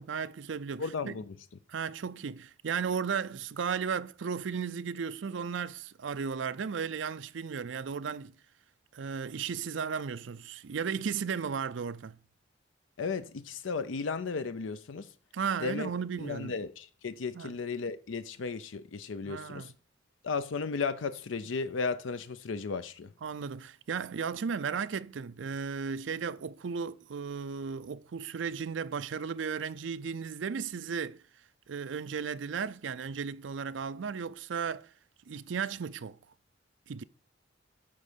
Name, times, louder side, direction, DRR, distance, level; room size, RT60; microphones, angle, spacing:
voice 1, 0.0-1.1 1.7-8.3 8.9-12.2 15.3-16.5 17.3-17.5 19.3-19.7 23.2-31.2 31.7-34.9 35.3-36.2 36.9-37.0, right 6 dB, 70° right, 0.5 m, -35 dB
voice 2, 0.8-1.4 13.0-15.1 15.6-15.9 16.2-19.7 20.2-23.1, left 4 dB, 80° left, 0.5 m, -35 dB
9.4 x 3.6 x 6.7 m
head